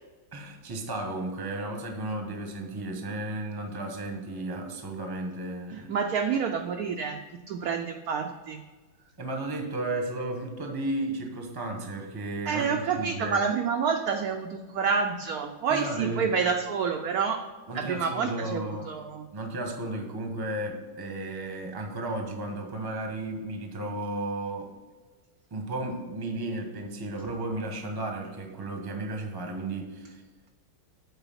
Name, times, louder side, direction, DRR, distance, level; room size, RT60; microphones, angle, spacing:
voice 1, 0.3-5.9 9.2-13.5 15.7-16.3 17.7-18.9 19.3-24.7 25.5-30.2, right 2 dB, 20° right, 3 dB, 0.6 m, -34 dB
voice 2, 5.7-7.2 7.5-8.6 12.5-17.4 17.7-19.3, right 6 dB, 80° right, 4 dB, 0.8 m, -28 dB
8.0 x 4.1 x 5.6 m, 1.3 s
omnidirectional pair, 2.2 m